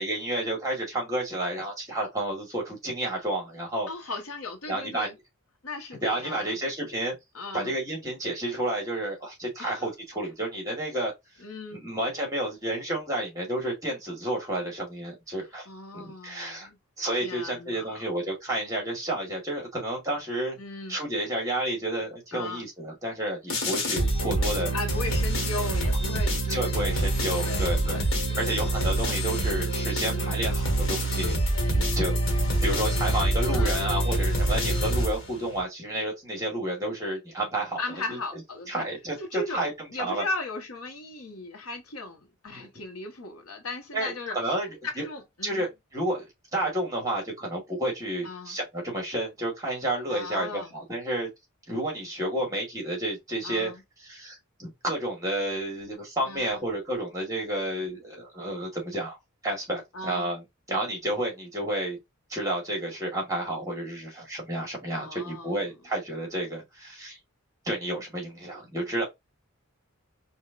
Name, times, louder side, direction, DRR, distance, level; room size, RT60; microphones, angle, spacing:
voice 1, 0.0-3.9 4.7-5.1 6.0-7.2 7.5-11.1 11.7-15.7 15.9-16.7 17.0-20.6 20.9-24.7 26.5-28.0 28.4-31.4 31.7-37.8 38.1-38.2 38.7-39.7 40.0-40.3 42.5-42.7 43.9-44.7 45.0-45.1 45.4-46.2 46.5-51.3 51.7-53.7 54.1-59.2 59.4-62.0 62.3-67.2 67.6-69.0, right 1 dB, 15° right, 2.2 m, -31 dB
voice 2, 3.9-5.1 5.6-6.6 7.3-7.7 9.6-9.9 11.4-11.9 15.7-16.8 17.1-18.0 20.6-21.0 22.3-22.7 24.7-26.8 27.4-28.0 28.3-28.5 30.0-30.3 33.5-33.9 37.8-38.8 39.2-44.5 44.9-45.7 48.2-48.6 50.1-50.7 53.4-53.8 56.2-56.6 59.9-60.3 64.9-65.6, left 2 dB, 80° left, 1.4 m, -37 dB
sound 1, 23.5-35.6, right 1 dB, 60° left, 1.6 m, -26 dB
4.9 x 2.7 x 2.5 m
head